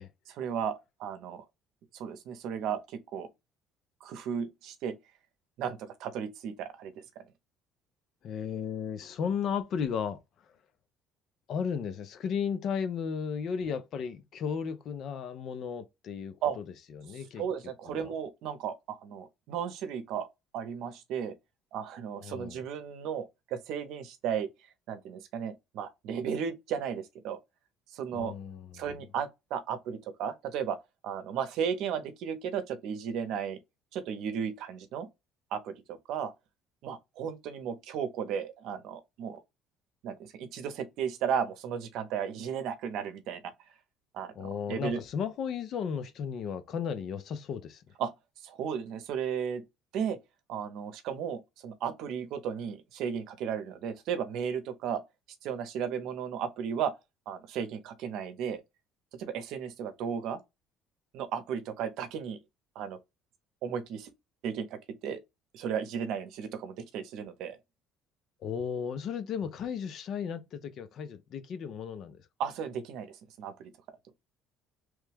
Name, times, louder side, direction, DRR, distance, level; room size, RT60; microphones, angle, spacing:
voice 1, 0.3-1.4 1.9-3.3 4.0-4.9 5.6-7.2 16.4-16.6 17.4-20.3 20.5-21.3 21.7-23.2 23.5-24.5 24.9-27.4 27.9-28.3 28.7-30.8 31.0-33.6 33.9-35.1 35.5-36.3 36.8-39.4 40.0-43.4 44.1-45.0 48.0-48.1 48.4-49.6 49.9-50.2 50.5-55.0 55.4-56.9 57.3-58.6 59.1-60.4 61.1-62.4 62.7-63.0 63.6-64.1 64.4-65.2 65.5-67.6 72.4-73.7, right 7 dB, 70° right, 0.7 m, -34 dB
voice 2, 8.2-10.5 11.5-16.6 16.9-18.1 22.2-22.6 28.1-29.0 44.4-47.8 68.4-72.3, left 7 dB, 55° left, 0.6 m, -35 dB
3.1 x 2.2 x 3.3 m
cardioid pair, 130°, 0 cm